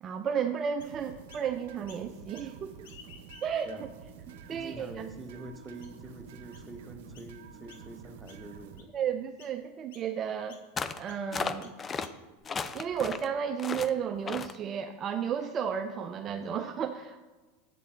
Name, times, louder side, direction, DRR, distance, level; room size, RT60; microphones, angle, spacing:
voice 1, 0.0-2.9 3.4-3.7 4.5-4.9 8.9-10.6 10.9-11.7 12.7-17.2, right 7 dB, 35° right, 6 dB, 0.4 m, -33 dB
Chirp tweet, 0.8-1.5 1.9-2.5 2.8-4.0 4.6-4.7 5.3-5.4 5.8-6.1 6.5-6.7 7.1-7.3 7.7-8.0 8.3-8.9 9.4-9.6 9.9-10.1 10.5-10.7 11.1-11.2 11.6-12.4, left 6 dB, 75° left, 1.1 m, -55 dB
sound 1, 0.8-8.8, right 7 dB, 75° right, 0.8 m, -49 dB
voice 2, 4.5-8.9, right 2 dB, 15° right, 6 dB, 0.9 m, -45 dB
sound 2, 10.8-11.0 11.3-12.1 12.4-13.3 13.6-13.9 14.3-14.6, left 5 dB, 25° left, 0.4 m, -34 dB
8.2 x 6.8 x 3.7 m, 1.2 s
hypercardioid pair, 100°, 0 cm